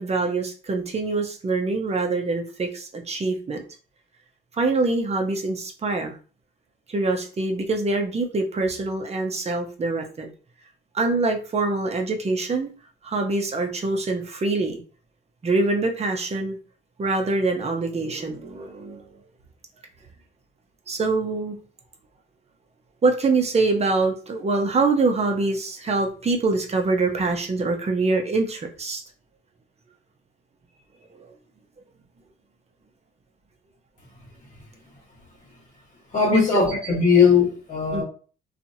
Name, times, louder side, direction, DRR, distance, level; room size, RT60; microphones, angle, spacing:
voice 1, 0.0-3.6 4.6-6.2 6.9-10.3 10.9-12.7 13.0-14.8 15.4-16.6 17.0-19.1 20.9-21.6 23.0-29.0 36.3-36.4 37.9-38.0, right 3 dB, 30° right, 3 dB, 0.7 m, -24 dB
voice 2, 36.1-38.0, left 5 dB, 40° left, -2 dB, 1.3 m, -19 dB
2.8 x 2.4 x 2.7 m, 0.38 s
cardioid pair, 90°, 20 cm